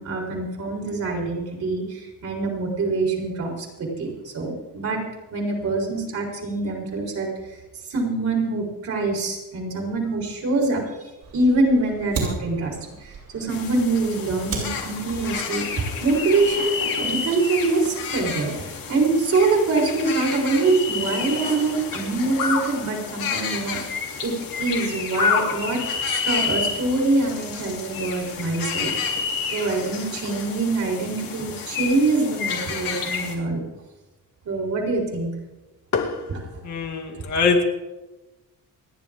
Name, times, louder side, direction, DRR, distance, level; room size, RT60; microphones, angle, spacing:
voice 1, 0.0-5.0 5.3-7.3 7.9-10.8 11.3-12.7 13.0-23.8 24.2-24.3 24.6-28.9 29.5-33.6 34.5-35.3 36.6-36.7 37.1-37.2, right 3 dB, 55° right, -1 dB, 3.9 m, -24 dB
Fire, 11.2-16.6, right 4 dB, 80° right, 6.1 m, -36 dB
sound 1, 13.5-33.3, left 6 dB, 75° left, 3.0 m, -29 dB
voice 2, 35.9-36.3 36.6-37.6, left 4 dB, 55° left, 1 dB, 2.3 m, -23 dB
28.5 x 10.0 x 3.6 m, 1.1 s
cardioid pair, 135°, 34 cm